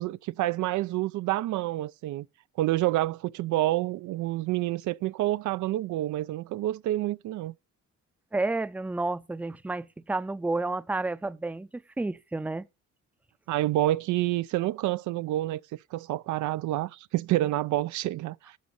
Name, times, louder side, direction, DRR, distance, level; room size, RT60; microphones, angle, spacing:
voice 1, 0.0-2.3 2.6-7.5 13.5-18.6, right 15 dB, 75° right, 0.5 m, -28 dB
voice 2, 8.3-12.7, right 2 dB, 5° right, 0.5 m, -31 dB
11.5 x 6.9 x 5.4 m
cardioid pair, 90°, 30 cm